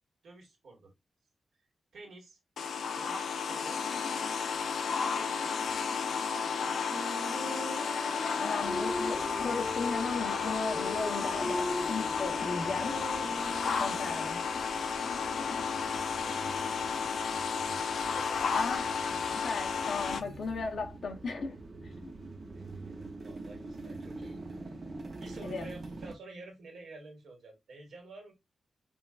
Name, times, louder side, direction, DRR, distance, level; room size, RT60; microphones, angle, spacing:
voice 1, 0.2-0.9 1.9-2.4 2.9-3.8 5.1-5.6 6.3-6.8 14.9-15.7 16.2-17.0 18.0-18.5 22.5-24.4 24.7-24.8 25.2-28.3, right 3 dB, 90° right, 1.6 m, -50 dB
sound 1, 2.6-20.2, left 5 dB, 75° left, 0.4 m, -32 dB
Wind instrument woodwind instrument, 6.9-14.6, equal, 5° right, 0.8 m, -39 dB
voice 2, 8.3-13.0 13.8-14.4 18.5-18.9 19.4-21.6 22.0-22.1 25.4-25.7, left 4 dB, 55° left, 0.8 m, -36 dB
sound 2, 8.6-26.1, right 2 dB, 35° right, 0.7 m, -47 dB
5.0 x 2.3 x 2.4 m
wide cardioid pair, 180°, 0 cm